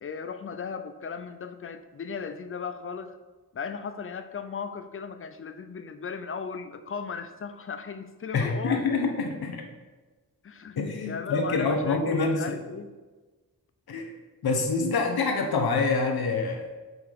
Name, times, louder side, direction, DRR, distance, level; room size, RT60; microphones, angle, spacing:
voice 1, 0.0-3.2 3.5-8.9 10.4-10.8 11.0-12.9, left 6 dB, 35° left, 10 dB, 0.5 m, -37 dB
voice 2, 8.3-9.6 10.8-12.6 13.9-14.1 14.4-16.8, left 4 dB, 75° left, 3 dB, 1.1 m, -26 dB
9.0 x 6.1 x 3.5 m, 1.3 s
wide cardioid pair, 150°, 37 cm